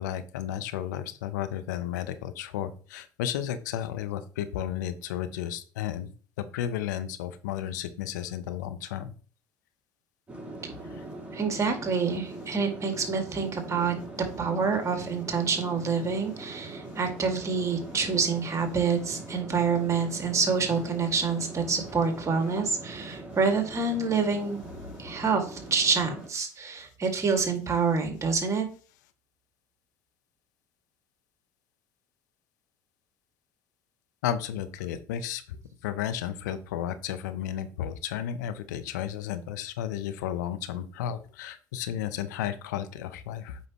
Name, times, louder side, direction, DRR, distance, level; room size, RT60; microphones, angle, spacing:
voice 1, 0.0-6.1 6.4-9.1 34.2-35.6 35.8-43.6, left 10 dB, 85° left, 12 dB, 0.7 m, -33 dB
sound 1, 10.3-26.3, right 2 dB, 15° right, 3.6 m, -42 dB
voice 2, 11.3-13.9 14.4-24.6 25.0-28.7, right 5 dB, 30° right, 4 dB, 2.1 m, -27 dB
8.4 x 5.3 x 3.0 m, 0.38 s
hypercardioid pair, 75°, 9 cm